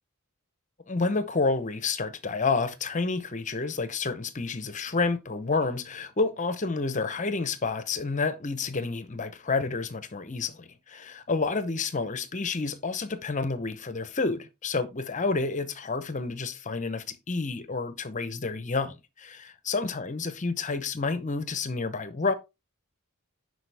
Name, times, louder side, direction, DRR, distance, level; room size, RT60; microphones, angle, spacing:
voice 1, 0.9-22.3, left 4 dB, 35° left, 0.8 m, -29 dB
10.5 x 4.8 x 3.4 m
head